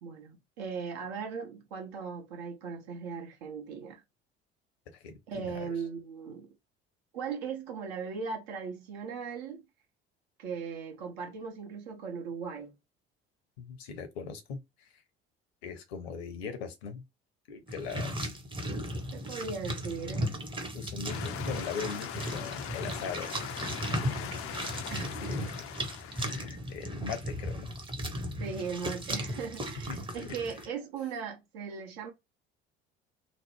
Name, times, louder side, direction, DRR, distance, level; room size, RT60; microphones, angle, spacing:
voice 1, 0.0-4.0 5.3-6.5 7.1-9.6 10.4-12.7 19.1-20.3 24.9-25.5 28.4-32.1, right 6 dB, 65° right, 1.2 m, -38 dB
voice 2, 4.9-5.7 13.6-15.0 15.6-17.0 17.5-18.2 20.7-23.5 25.2-25.5 26.1-27.7 29.9-30.3, left 6 dB, 70° left, 0.9 m, -40 dB
sound 1, 17.7-30.7, equal, 15° right, 0.9 m, -36 dB
sound 2, 21.1-26.5, left 10 dB, 45° left, 0.5 m, -41 dB
3.1 x 2.0 x 3.1 m
figure-of-eight pair, 55°, 33 cm